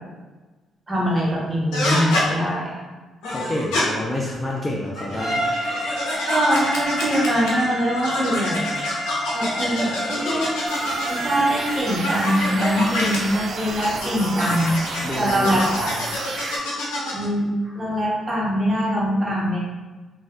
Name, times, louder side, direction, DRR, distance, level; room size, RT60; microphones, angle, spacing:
voice 1, 0.9-2.8 6.3-8.8 9.3-10.5 11.1-14.8 15.2-15.9 17.1-19.6, equal, 20° right, -5 dB, 1.1 m, -23 dB
sound 1, 1.7-2.3 3.2-3.8 4.8-7.6 8.0-11.2 11.8-13.2 13.8-17.3, left 1 dB, 90° left, 0.8 m, -27 dB
voice 2, 3.3-5.4 15.0-16.2, left 1 dB, 15° left, -3 dB, 0.4 m, -29 dB
Bowed string instrument, 5.1-11.9, equal, ahead, 0.9 m, -30 dB
sound 2, 10.7-16.6, right 3 dB, 55° right, 0.4 m, -31 dB
2.5 x 2.2 x 3.5 m, 1.3 s
cardioid pair, 90°, 0 cm